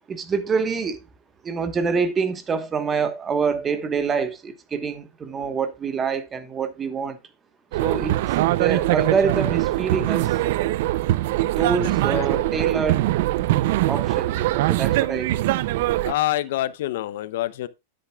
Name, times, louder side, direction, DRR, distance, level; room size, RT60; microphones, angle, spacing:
voice 1, 0.1-1.0 1.4-7.2 7.8-10.4 11.6-13.0 13.9-15.5, right 5 dB, 20° right, 1.2 m, -26 dB
sound 1, 7.7-16.1, right 16 dB, 60° right, 0.4 m, -22 dB
voice 2, 12.1-12.5 15.9-17.7, left 14 dB, 65° left, 0.6 m, -27 dB
10.5 x 8.3 x 2.3 m
supercardioid pair, 145°, 0 cm